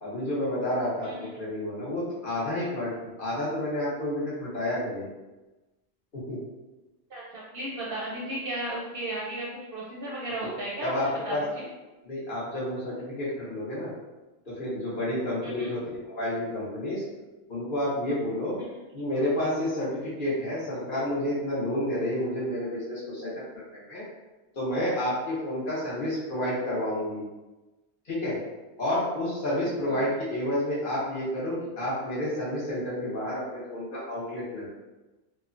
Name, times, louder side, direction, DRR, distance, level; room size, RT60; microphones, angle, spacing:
voice 1, 0.0-5.1 6.1-6.4 10.4-10.5 10.8-11.4 12.0-13.9 14.5-17.0 17.5-18.6 18.9-23.3 23.7-24.0 24.5-27.2 28.1-28.4 28.8-34.7, left 1 dB, 50° left, -7 dB, 0.8 m, -30 dB
voice 2, 7.1-11.7 15.4-15.7 18.7-18.8 29.9-30.0, right 1 dB, 60° right, -5 dB, 0.7 m, -35 dB
3.0 x 2.0 x 2.4 m, 1.1 s
omnidirectional pair, 1.3 m